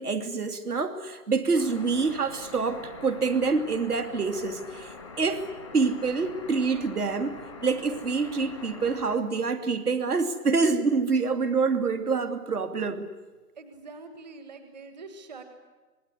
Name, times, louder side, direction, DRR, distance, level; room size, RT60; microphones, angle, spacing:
voice 1, 0.0-5.4 5.7-13.1, right 4 dB, 70° right, 9 dB, 3.0 m, -26 dB
sound 1, 1.5-9.2, left 3 dB, 5° right, 0.9 m, -44 dB
voice 2, 13.6-15.4, right 3 dB, 25° right, 8 dB, 1.7 m, -44 dB
27.0 x 20.0 x 9.9 m, 1.2 s
hypercardioid pair, 175°, 47 cm